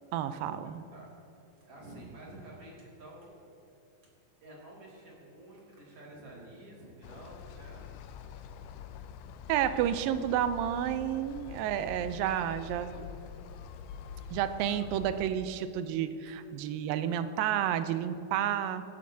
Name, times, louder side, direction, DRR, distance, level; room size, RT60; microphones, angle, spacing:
voice 1, 0.1-0.8 9.5-13.1 14.3-18.8, right 10 dB, 80° right, 11 dB, 2.3 m, -31 dB
voice 2, 0.6-1.1 1.6-3.4 4.3-7.8 16.2-16.3, right 1 dB, 45° right, -4 dB, 2.9 m, -50 dB
sound 1, 7.0-15.3, left 7 dB, 80° left, 2.0 m, -45 dB
16.0 x 12.0 x 2.7 m, 2.9 s
omnidirectional pair, 4.1 m